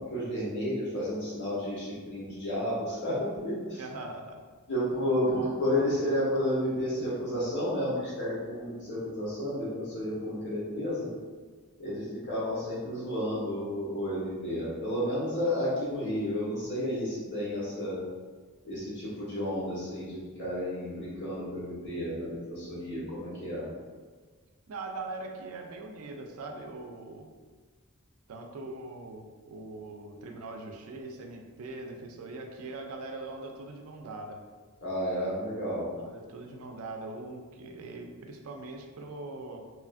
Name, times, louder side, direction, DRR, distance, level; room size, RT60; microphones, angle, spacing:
voice 1, 0.0-3.8 4.7-11.1 11.8-18.0 18.6-23.7 34.8-35.9, equal, 55° left, -8 dB, 1.2 m, -31 dB
voice 2, 3.8-4.4 24.7-27.4 28.3-34.4 36.0-39.7, right 2 dB, 75° right, 3 dB, 0.4 m, -41 dB
2.9 x 2.4 x 2.4 m, 1.4 s
head